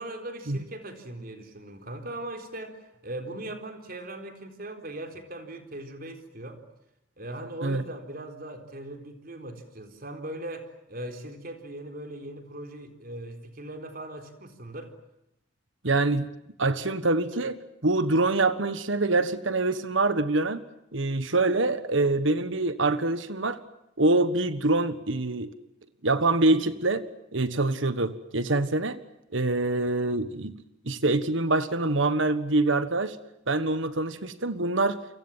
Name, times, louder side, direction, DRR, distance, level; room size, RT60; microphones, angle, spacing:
voice 1, 0.0-6.6 7.2-14.9, right 1 dB, 45° right, 6 dB, 4.1 m, -39 dB
voice 2, 15.8-16.3 16.6-20.6 20.9-23.6 24.0-25.5 26.0-27.0 27.3-29.0 29.3-33.2 33.5-35.0, right 2 dB, 70° right, 13 dB, 1.5 m, -25 dB
29.5 x 25.0 x 7.5 m, 0.83 s
head